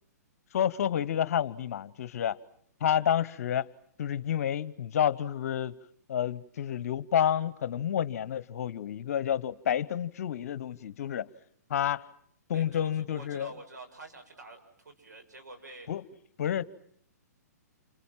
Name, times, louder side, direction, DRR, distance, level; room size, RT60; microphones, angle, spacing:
voice 1, 0.5-2.4 2.8-3.7 4.0-5.7 6.1-11.3 11.7-12.0 12.5-13.5 15.9-16.0 16.4-16.6, left 9 dB, 60° left, 1.1 m, -29 dB
voice 2, 12.5-15.9, right 2 dB, 85° right, 7.1 m, -48 dB
29.5 x 25.0 x 7.5 m
hypercardioid pair, 130°, 9 cm